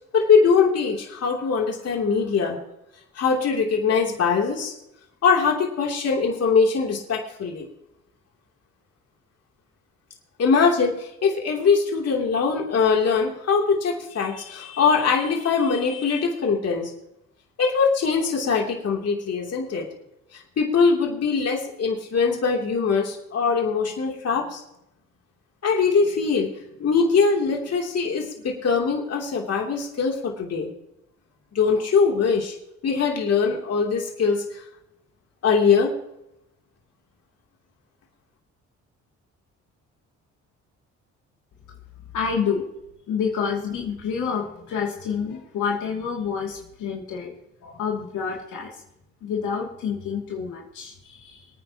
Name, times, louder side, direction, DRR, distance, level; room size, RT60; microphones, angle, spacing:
voice 1, 0.1-2.6 3.2-4.7 5.2-7.7 10.4-16.9 17.6-19.9 20.6-24.6 25.6-26.5 26.8-30.7 31.5-32.5 32.8-34.4 35.4-35.9, left 5 dB, 55° left, -1 dB, 3.2 m, -22 dB
voice 2, 42.1-42.6 43.1-47.3 47.6-48.8 49.2-51.5, left 6 dB, 80° left, -2 dB, 2.8 m, -28 dB
25.0 x 9.4 x 3.0 m, 0.83 s
cardioid pair, 90°, 30 cm